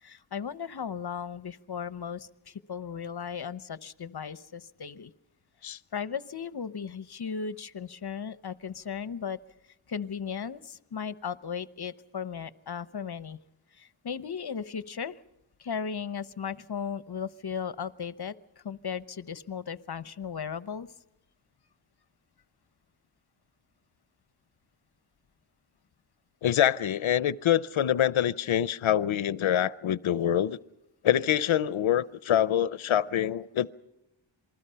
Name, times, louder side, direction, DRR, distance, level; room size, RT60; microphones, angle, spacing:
voice 1, 0.0-5.1 5.9-9.4 9.9-13.4 13.7-15.2 15.6-20.9, left 7 dB, 55° left, 1.0 m, -36 dB
voice 2, 26.4-30.6 31.0-33.7, left 10 dB, 90° left, 0.7 m, -25 dB
27.0 x 20.5 x 5.7 m
wide cardioid pair, 70°, 46 cm